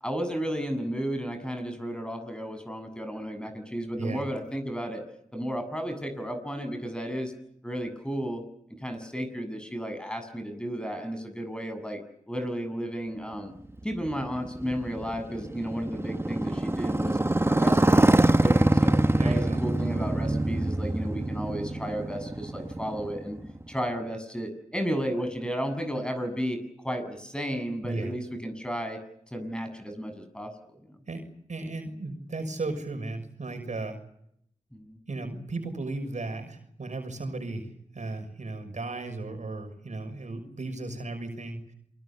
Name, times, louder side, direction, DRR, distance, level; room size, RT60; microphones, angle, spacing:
voice 1, 0.0-5.0 5.3-7.3 7.6-8.4 8.8-12.0 12.3-13.5 13.8-17.2 17.5-19.0 19.2-23.4 23.7-29.0 29.3-31.0 34.7-35.0, equal, 5° left, 8 dB, 7.7 m, -33 dB
Motorcycle, 13.8-23.7, right 1 dB, 20° right, 1.3 m, -25 dB
voice 2, 19.2-19.6 27.8-28.2 31.1-31.2 31.5-34.0 35.1-41.6, right 2 dB, 65° right, 6 dB, 6.1 m, -35 dB
29.0 x 23.5 x 7.2 m, 0.72 s
cardioid pair, 55°, 13 cm